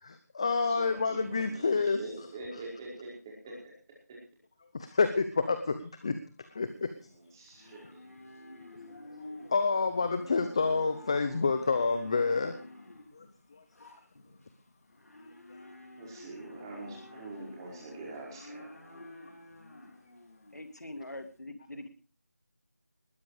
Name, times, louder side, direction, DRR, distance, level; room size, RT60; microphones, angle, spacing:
voice 1, 0.0-2.3 2.5-2.6 4.7-6.9 9.2-12.6 13.1-13.3 13.5-13.6, left 4 dB, 20° left, 10 dB, 0.7 m, -29 dB
voice 2, 0.7-3.1 3.4-3.5 7.4-8.0 16.0-19.0, right 2 dB, 15° right, -3 dB, 4.8 m, -44 dB
Livestock farm animals working animals, 6.6-21.3, left 2 dB, 60° left, 4.5 m, -50 dB
voice 3, 20.5-21.9, left 1 dB, 80° left, 8 dB, 2.6 m, -43 dB
20.0 x 10.5 x 4.9 m, 0.37 s
figure-of-eight pair, 170°, 9 cm